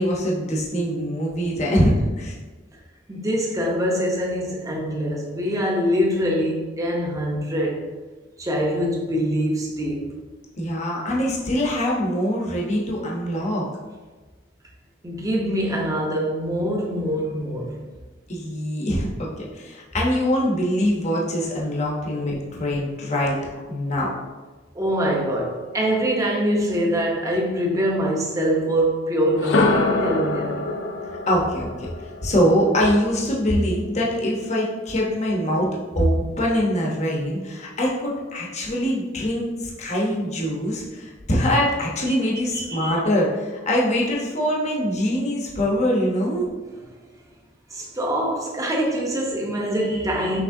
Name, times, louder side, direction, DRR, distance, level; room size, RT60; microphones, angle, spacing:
voice 1, 0.0-2.4 10.6-13.7 18.3-24.1 31.3-31.9 32.2-35.7 35.9-46.5, equal, 40° left, 0.8 m, -23 dB
voice 2, 3.1-7.9 8.4-10.2 15.0-17.8 22.1-22.2 24.7-30.7 42.1-42.2 42.5-42.9 47.7-50.4, equal, 20° right, 0.7 m, -24 dB
sound 1, 29.3-33.3, left 3 dB, 85° left, 0.5 m, -25 dB
6.0 x 3.3 x 2.6 m
head